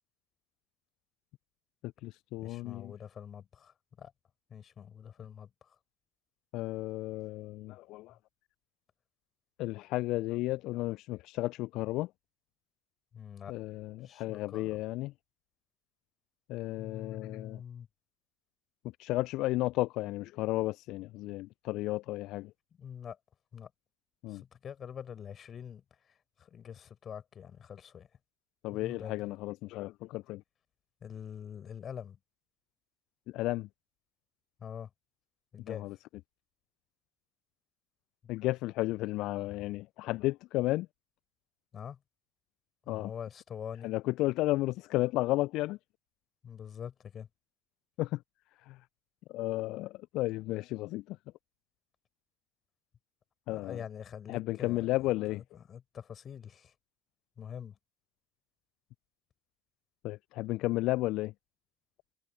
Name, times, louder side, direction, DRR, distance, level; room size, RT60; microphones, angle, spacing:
voice 1, 1.8-2.9 6.5-8.1 9.6-12.1 13.5-15.1 16.5-17.6 19.0-22.5 24.2-24.4 28.6-30.4 33.3-33.7 35.7-35.8 38.3-40.9 42.9-43.1 43.8-45.8 48.0-48.2 48.7-48.8 49.3-51.2 53.5-53.8 54.3-55.4 60.0-61.3, left 18 dB, 55° left, 0.4 m, -33 dB
voice 2, 2.4-4.1 4.5-5.8 8.1-8.2 13.1-13.6 14.0-14.8 16.8-17.9 22.7-23.2 23.5-23.7 24.3-28.1 28.7-29.4 31.0-32.2 34.6-34.9 35.5-36.0 38.2-38.3 41.7-42.0 42.8-43.9 46.4-47.3 53.5-56.7 57.4-57.8, left 8 dB, 40° left, 5.6 m, -45 dB
figure-of-eight pair, 65°, 0 cm